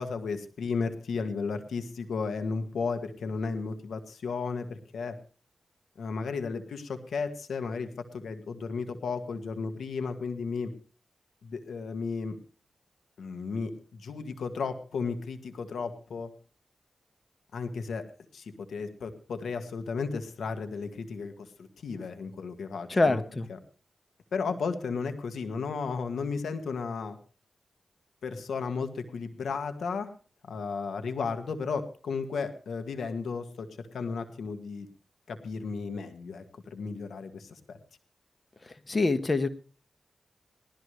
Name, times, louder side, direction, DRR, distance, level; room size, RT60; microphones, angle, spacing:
voice 1, 0.0-5.2 6.0-10.7 11.4-12.4 13.2-16.3 17.5-18.0 18.3-23.2 24.3-27.2 28.2-30.1 30.4-34.9 35.3-37.8, left 5 dB, 90° left, 8 dB, 1.7 m, -34 dB
voice 2, 22.9-23.5 38.6-39.5, left 3 dB, 40° left, 11 dB, 1.5 m, -25 dB
19.0 x 13.0 x 3.3 m, 0.37 s
cardioid pair, 55°, 0 cm